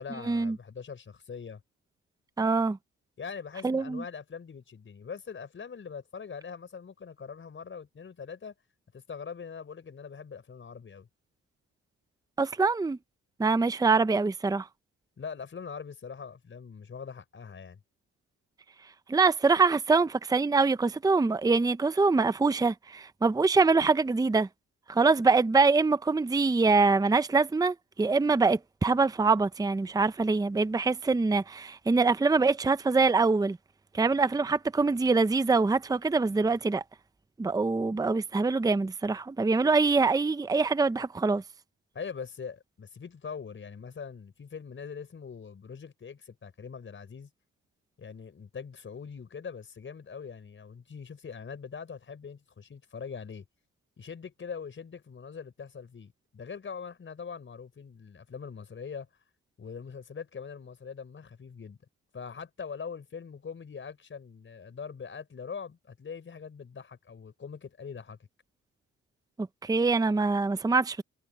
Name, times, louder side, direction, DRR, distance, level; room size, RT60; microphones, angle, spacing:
voice 1, 0.0-1.6 3.2-8.5 8.9-11.1 15.2-17.8 41.9-47.3 48.0-53.4 54.0-59.1 59.6-61.8 62.1-68.2, left 6 dB, 40° left, 5.9 m, -42 dB
voice 2, 2.4-2.8 3.6-4.0 12.4-13.0 13.4-14.7 19.1-24.5 24.9-33.6 33.9-36.8 37.4-41.4 69.4-71.0, right 4 dB, 10° right, 0.7 m, -24 dB
cardioid pair, 90°, 30 cm